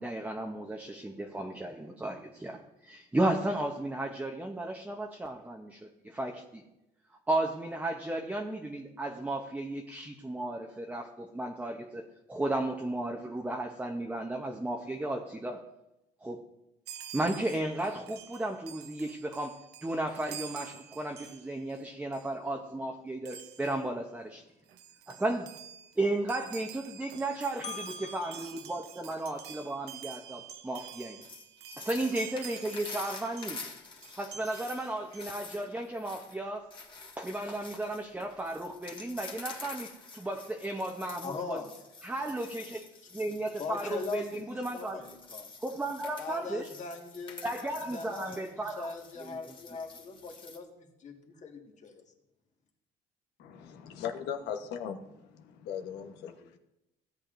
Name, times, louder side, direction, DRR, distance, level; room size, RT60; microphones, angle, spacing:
voice 1, 0.0-6.6 7.3-15.6 16.2-16.4 17.1-24.4 25.1-25.5 26.0-31.3 31.8-33.6 34.2-36.7 37.2-41.6 42.0-42.8 43.1-45.0 45.6-46.7 47.4-48.9 49.2-49.4, right 1 dB, 10° right, 2 dB, 0.8 m, -34 dB
Chime, 16.9-21.8 22.1-22.4 23.3-23.9 24.4-24.5 24.7-33.7 34.0-35.3, right 9 dB, 75° right, 0.8 m, -48 dB
voice 2, 27.6-28.6 41.2-41.7 43.6-45.5 46.2-52.0, left 4 dB, 45° left, 2 dB, 1.7 m, -41 dB
sound 1, 31.2-50.6, left 3 dB, 30° left, 1.7 m, -48 dB
voice 3, 53.4-55.0 55.6-56.3, left 8 dB, 90° left, 6 dB, 1.1 m, -37 dB
16.0 x 8.4 x 2.6 m, 0.90 s
cardioid pair, 110°, 17 cm